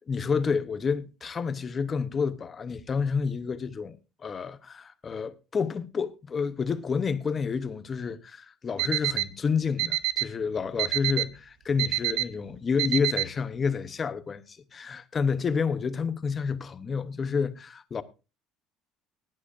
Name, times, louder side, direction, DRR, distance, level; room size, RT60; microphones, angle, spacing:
voice 1, 0.0-4.0 4.2-18.0, left 5 dB, 25° left, 0.8 m, -29 dB
Alarm, 8.8-9.2 9.8-10.2 10.8-11.2 11.8-12.2 12.8-13.2, right 20 dB, 75° right, 0.8 m, -25 dB
18.5 x 10.5 x 2.6 m
cardioid pair, 165°, 0 cm